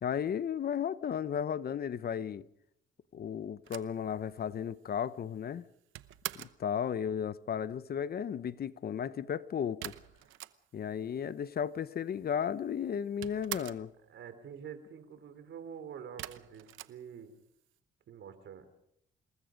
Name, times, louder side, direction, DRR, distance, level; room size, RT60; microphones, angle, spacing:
voice 1, 0.0-2.5 3.1-5.6 6.3-9.9 10.7-13.9, left 8 dB, 50° left, 0.9 m, -34 dB
sound 1, 3.6-6.7 9.8-11.0 11.3-11.4 11.5-12.3 12.6-13.9 16.2-17.7, right 15 dB, 90° right, 0.9 m, -45 dB
voice 2, 14.1-17.3 18.1-18.7, right 7 dB, 70° right, 3.7 m, -47 dB
27.0 x 20.5 x 5.2 m
cardioid pair, 90°, 20 cm